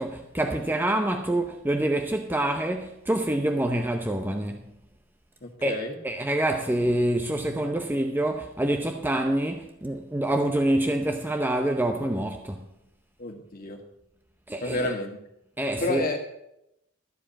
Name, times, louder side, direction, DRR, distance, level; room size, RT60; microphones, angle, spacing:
voice 1, 0.0-4.6 5.6-12.6 14.5-14.9 15.6-16.0, right 1 dB, 10° right, 0.7 m, -26 dB
voice 2, 5.4-6.0 13.2-13.8 14.6-15.1 15.8-16.2, left 2 dB, 45° left, 1.9 m, -30 dB
13.5 x 5.0 x 8.5 m
head